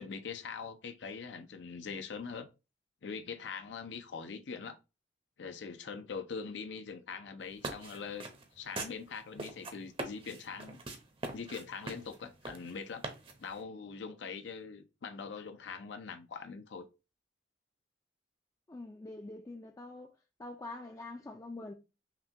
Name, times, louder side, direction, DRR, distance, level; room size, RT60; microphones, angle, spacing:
voice 1, 0.0-2.5 3.0-4.8 5.4-8.3 8.6-10.8 11.3-13.0 13.4-16.9, left 5 dB, 75° left, 0.5 m, -42 dB
sound 1, 7.4-13.6, right 2 dB, 30° right, 0.7 m, -43 dB
voice 2, 18.7-20.1 20.4-21.7, left 2 dB, 20° left, 0.3 m, -45 dB
5.7 x 2.2 x 2.7 m
head